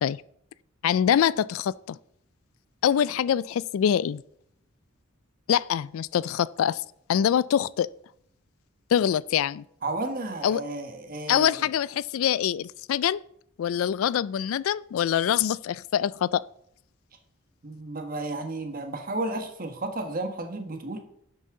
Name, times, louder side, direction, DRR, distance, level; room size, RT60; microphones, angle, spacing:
voice 1, 0.8-2.0 2.8-4.2 5.5-6.8 7.1-7.9 8.9-9.6 10.4-10.6 11.3-13.2 13.6-16.4, left 9 dB, 75° left, 0.3 m, -24 dB
voice 2, 9.8-11.7 17.6-21.0, right 2 dB, 40° right, 1.3 m, -33 dB
11.0 x 8.0 x 3.7 m
head